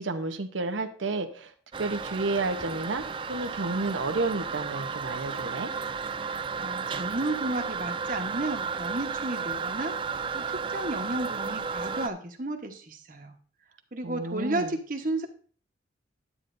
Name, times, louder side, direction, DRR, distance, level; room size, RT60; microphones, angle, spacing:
voice 1, 0.0-1.5 1.8-3.0 3.3-5.7 14.0-14.7, right 3 dB, 90° right, 6 dB, 0.9 m, -31 dB
Toilet flush, 1.7-12.1, right 5 dB, 25° right, 0.3 m, -33 dB
voice 2, 6.6-10.0 10.3-13.3 13.9-15.3, right 2 dB, 45° right, 4 dB, 1.2 m, -32 dB
11.0 x 9.0 x 2.6 m, 0.42 s
head